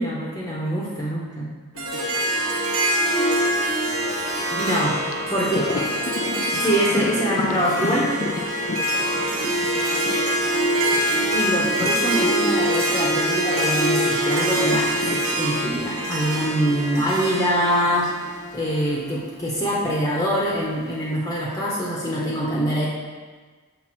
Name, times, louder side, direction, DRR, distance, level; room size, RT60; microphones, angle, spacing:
voice 1, 0.0-1.5 4.5-4.9 5.3-5.7 6.5-8.1 11.3-18.0 18.5-22.9, equal, 15° left, -5 dB, 0.7 m, -24 dB
voice 2, 1.7-4.5 4.8-6.4 6.7-7.9 8.3-9.8 10.3-11.5 17.6-18.7, left 2 dB, 80° left, 1 dB, 1.0 m, -40 dB
Harp, 1.8-19.0, right 1 dB, 75° right, 1.5 m, -24 dB
Thunder, 5.1-13.9 14.2-18.5 18.8-18.9 20.1-20.8, left 3 dB, 35° left, 0.3 m, -34 dB
5.9 x 3.5 x 5.9 m, 1.4 s
head